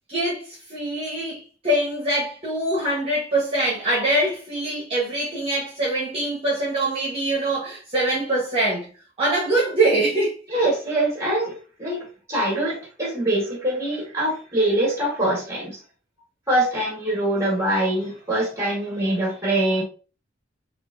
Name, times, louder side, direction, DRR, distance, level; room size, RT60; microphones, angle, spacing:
voice 1, 0.1-8.9 9.2-10.4, right 1 dB, 30° right, 1.1 m, -23 dB
voice 2, 10.5-15.8 16.5-19.8, right 1 dB, 15° right, 1.5 m, -24 dB
4.3 x 2.5 x 2.6 m
head